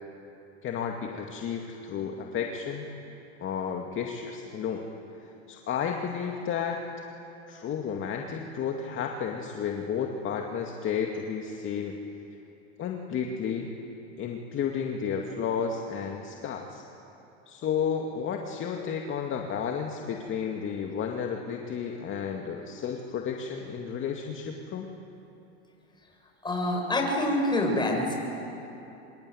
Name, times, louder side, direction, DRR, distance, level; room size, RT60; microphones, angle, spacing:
voice 1, 0.6-2.9 3.4-4.9 5.2-6.8 7.5-11.9 12.8-13.7 14.2-16.8 17.5-24.9, left 7 dB, 35° left, 2 dB, 2.3 m, -32 dB
voice 2, 26.4-28.1, left 1 dB, 15° left, 1 dB, 7.1 m, -26 dB
26.0 x 22.5 x 9.5 m, 3.0 s
hypercardioid pair, 100°, 33 cm